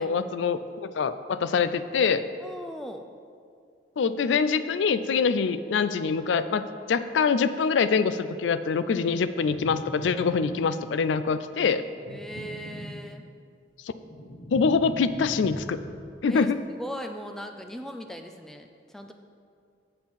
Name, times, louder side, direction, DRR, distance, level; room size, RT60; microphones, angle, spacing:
voice 1, 0.0-2.3 4.0-11.8 14.5-15.8 16.2-16.6, left 5 dB, 85° left, 12 dB, 0.4 m, -25 dB
voice 2, 2.4-3.0 12.1-13.2 16.3-19.1, equal, ahead, 5 dB, 0.4 m, -39 dB
sound 1, 9.4-11.0 11.9-13.4 13.8-16.2, left 1 dB, 50° left, 0.8 m, -41 dB
7.7 x 4.4 x 7.1 m, 2.3 s
head